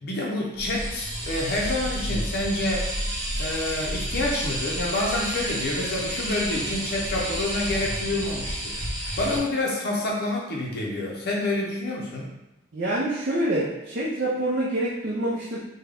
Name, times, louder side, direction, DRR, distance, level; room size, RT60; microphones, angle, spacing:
voice 1, 0.0-2.9 3.4-8.7 9.2-12.3, left 2 dB, 55° left, -3 dB, 0.6 m, -28 dB
sound 1, 0.5-9.4, equal, 20° right, 0.7 m, -30 dB
voice 2, 12.7-15.6, right 1 dB, 55° right, -6 dB, 0.6 m, -26 dB
3.6 x 2.1 x 3.4 m, 0.95 s
head